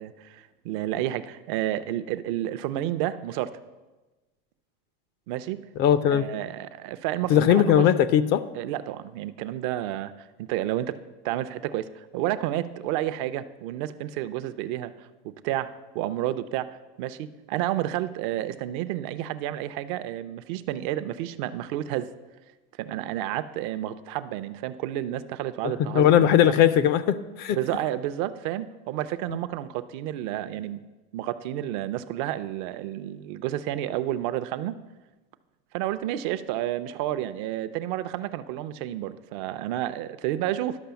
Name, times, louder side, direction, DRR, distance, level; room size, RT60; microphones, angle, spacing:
voice 1, 0.0-3.6 5.3-5.6 6.1-7.9 8.5-11.0 11.2-22.1 22.8-26.6 27.5-30.8 31.1-34.7 35.7-40.8, right 13 dB, 55° right, 13 dB, 0.6 m, -30 dB
voice 2, 5.8-6.3 7.3-8.4 25.6-27.6, left 10 dB, 35° left, 14 dB, 0.4 m, -19 dB
11.5 x 5.5 x 6.9 m, 1.2 s
supercardioid pair, 155°, 30 cm